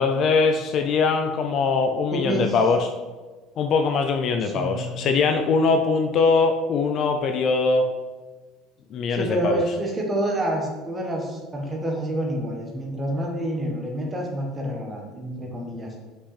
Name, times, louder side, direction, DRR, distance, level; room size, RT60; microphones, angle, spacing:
voice 1, 0.0-2.9 3.6-7.9 8.9-9.6, left 4 dB, 35° left, 6 dB, 0.4 m, -22 dB
voice 2, 2.1-2.6 4.4-5.1 9.1-15.9, right 1 dB, 15° right, 0 dB, 1.1 m, -28 dB
5.7 x 5.4 x 4.1 m, 1.3 s
cardioid pair, 175°, 0 cm